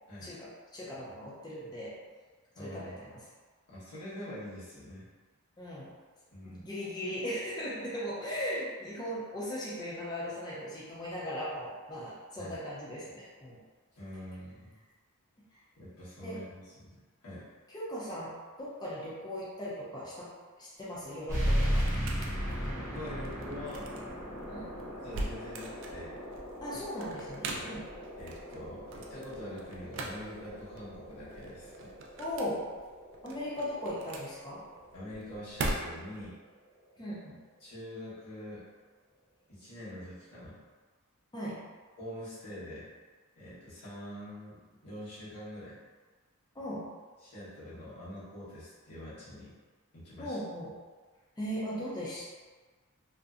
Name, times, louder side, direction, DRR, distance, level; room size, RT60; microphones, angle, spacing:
voice 1, 0.2-2.0 2.6-3.3 5.6-5.9 6.5-13.6 16.2-16.4 17.7-20.3 20.6-21.9 24.4-24.7 26.6-27.8 32.2-32.7 33.2-34.6 37.0-37.4 41.3-41.6 46.5-46.9 50.2-50.8 51.4-52.3, equal, 20° left, -8 dB, 0.5 m, -38 dB
voice 2, 2.5-3.0 3.7-5.1 6.3-6.7 12.4-12.6 13.9-14.8 15.8-17.0 17.2-17.5 22.7-24.0 25.0-26.2 27.6-27.8 28.2-31.9 34.9-36.4 37.6-38.6 39.5-40.6 42.0-42.9 43.4-45.8 47.2-49.5 49.9-50.4, left 1 dB, 85° left, -10 dB, 1.1 m, -45 dB
sound 1, 20.8-36.3, right 2 dB, 55° right, 0.3 m, -42 dB
sound 2, 21.3-36.4, equal, 10° right, 0.8 m, -37 dB
2.6 x 2.1 x 2.4 m, 1.4 s
head